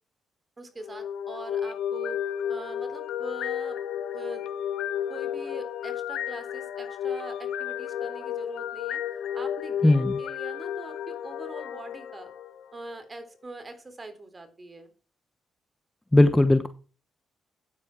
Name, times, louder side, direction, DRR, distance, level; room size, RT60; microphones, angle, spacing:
voice 1, 0.6-2.2 2.5-3.8 4.1-4.5 5.1-9.0 9.3-12.3 12.7-14.9, right 2 dB, 25° right, 8 dB, 3.7 m, -42 dB
sound 1, 0.8-12.9, left 9 dB, 90° left, 1.1 m, -33 dB
voice 2, 9.8-10.2 16.1-16.7, left 1 dB, 10° left, 10 dB, 1.0 m, -18 dB
13.5 x 9.6 x 4.7 m, 0.36 s
cardioid pair, 105°, 0 cm